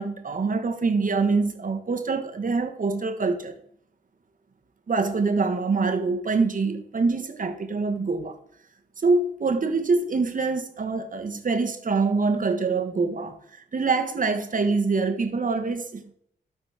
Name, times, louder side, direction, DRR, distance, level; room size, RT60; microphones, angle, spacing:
voice 1, 0.0-3.5 4.9-8.4 9.0-16.1, right 4 dB, 45° right, 1.5 m, -25 dB
12.5 x 4.4 x 4.8 m
supercardioid pair, 55°, 18 cm